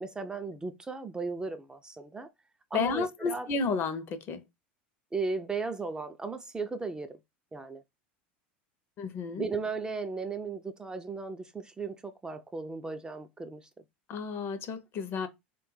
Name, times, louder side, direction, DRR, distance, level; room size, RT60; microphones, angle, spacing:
voice 1, 0.0-2.3 2.7-3.5 5.1-7.2 7.5-7.8 9.4-13.8, right 4 dB, 15° right, 0.3 m, -36 dB
voice 2, 2.7-4.4 9.0-9.4 14.1-15.3, left 5 dB, 45° left, 0.5 m, -32 dB
3.3 x 2.2 x 3.0 m
hypercardioid pair, 85°, 6 cm